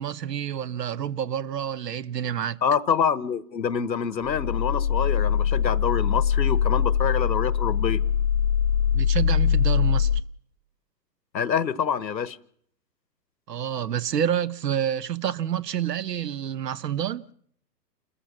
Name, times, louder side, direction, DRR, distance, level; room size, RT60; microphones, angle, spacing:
voice 1, 0.0-2.6 8.9-10.1 13.5-17.3, right 9 dB, 70° right, 1.0 m, -28 dB
voice 2, 2.6-8.0 11.3-12.4, left 7 dB, 85° left, 1.2 m, -26 dB
sound 1, 4.3-10.2, left 8 dB, 60° left, 1.0 m, -22 dB
28.0 x 14.0 x 7.3 m
hypercardioid pair, 130°, 50 cm